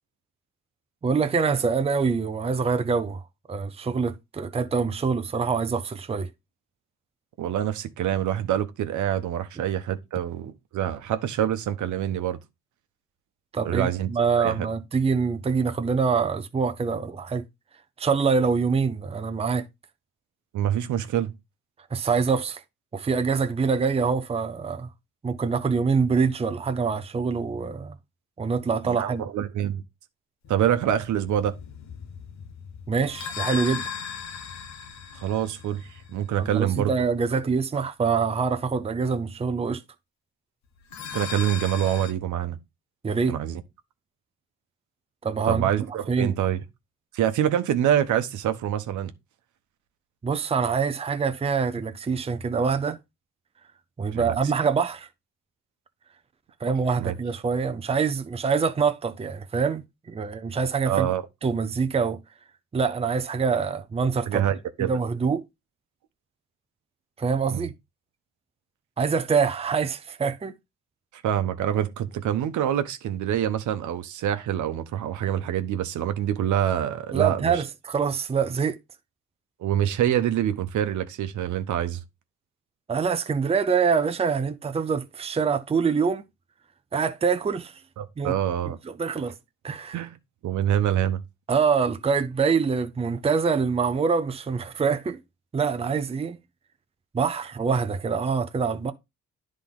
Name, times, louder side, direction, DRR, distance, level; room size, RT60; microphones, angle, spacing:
voice 1, 1.0-3.2 3.5-6.3 13.5-17.4 18.0-19.6 21.9-22.6 22.9-24.9 25.2-27.9 28.4-29.3 32.9-33.9 36.4-39.8 43.0-43.4 45.2-45.7 46.1-46.4 50.2-53.0 54.0-55.1 56.6-61.1 61.4-62.2 62.7-64.4 64.8-65.4 67.2-67.7 69.0-70.5 77.1-78.8 82.9-86.3 86.9-87.8 88.2-88.3 88.8-89.3 89.6-90.0 91.5-95.2 95.5-96.4 97.1-98.9, right 5 dB, 20° right, 0.6 m, -25 dB
voice 2, 7.4-12.4 13.6-14.1 14.4-14.7 20.5-21.3 28.8-29.8 30.5-31.5 35.1-35.8 36.1-36.9 37.3-37.4 41.1-42.6 43.3-43.6 45.5-46.6 47.1-49.1 54.1-54.4 56.6-57.1 60.9-61.2 64.3-64.9 67.5-67.7 71.2-77.6 79.6-82.0 88.0-88.8 89.9-90.1 90.4-91.2, right 10 dB, 75° right, 1.0 m, -26 dB
sound 1, 30.4-37.1 40.8-42.1, left 7 dB, 65° left, 1.0 m, -38 dB
10.5 x 3.8 x 3.7 m
cardioid pair, 90°, 30 cm